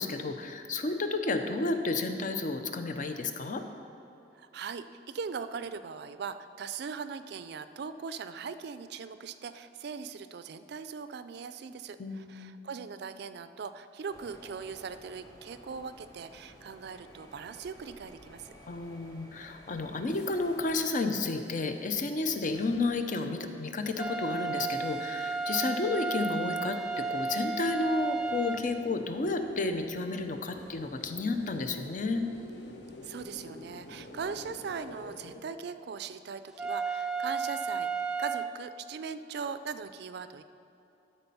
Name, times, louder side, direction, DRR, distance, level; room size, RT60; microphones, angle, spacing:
voice 1, 0.0-3.6 12.0-12.6 18.7-32.2, left 3 dB, 50° left, 7 dB, 0.6 m, -31 dB
voice 2, 4.3-18.5 33.0-40.4, right 5 dB, 65° right, 12 dB, 0.4 m, -40 dB
sound 1, 14.1-21.0, equal, 20° left, 0.8 m, -54 dB
sound 2, 16.3-35.4, left 1 dB, 70° left, 1.0 m, -52 dB
sound 3, 24.0-28.6 36.6-38.5, right 4 dB, 5° right, 0.4 m, -33 dB
12.5 x 4.2 x 5.5 m, 2.8 s
head